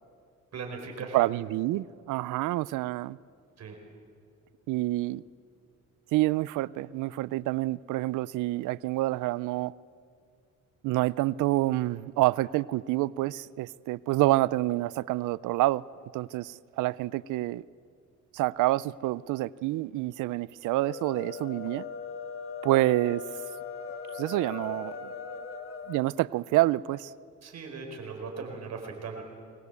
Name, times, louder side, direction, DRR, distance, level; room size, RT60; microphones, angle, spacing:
voice 1, 0.5-1.2 3.6-3.8 27.4-29.2, right 4 dB, 60° right, 4.8 m, -38 dB
voice 2, 1.1-3.2 4.7-5.2 6.1-9.7 10.8-15.8 16.1-17.6 18.3-21.9 22.6-23.2 24.1-25.1 25.9-27.1, right 17 dB, 90° right, 0.5 m, -27 dB
sound 1, 20.7-26.0, left 5 dB, 45° left, 2.1 m, -39 dB
22.5 x 20.0 x 8.2 m
cardioid pair, 90°, 30 cm